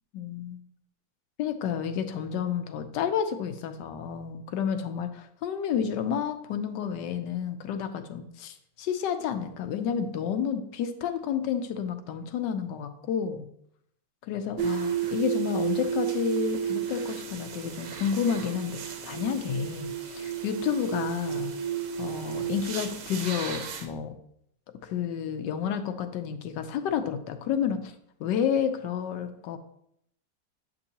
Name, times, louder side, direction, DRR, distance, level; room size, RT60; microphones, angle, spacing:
voice 1, 0.1-0.6 1.4-13.4 14.2-21.5 22.0-24.1 24.9-27.9 28.2-29.6, left 8 dB, 80° left, 8 dB, 1.2 m, -30 dB
sound 1, 14.6-23.8, right 9 dB, 70° right, 1.3 m, -32 dB
7.6 x 5.3 x 2.8 m, 0.72 s
omnidirectional pair, 2.0 m